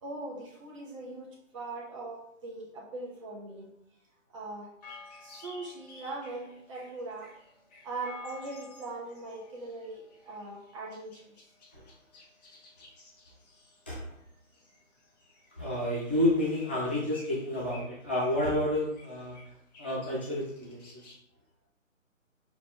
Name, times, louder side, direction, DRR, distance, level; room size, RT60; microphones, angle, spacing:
voice 1, 0.0-3.7 4.3-4.7 5.2-7.3 7.8-11.4, right 2 dB, 25° right, -3 dB, 1.6 m, -40 dB
sound 1, 4.8-21.1, left 3 dB, 30° left, 1.8 m, -53 dB
voice 2, 15.5-19.4 19.8-21.1, left 1 dB, 10° left, -8 dB, 0.5 m, -30 dB
6.7 x 4.1 x 3.5 m, 0.73 s
figure-of-eight pair, 145°, 40 cm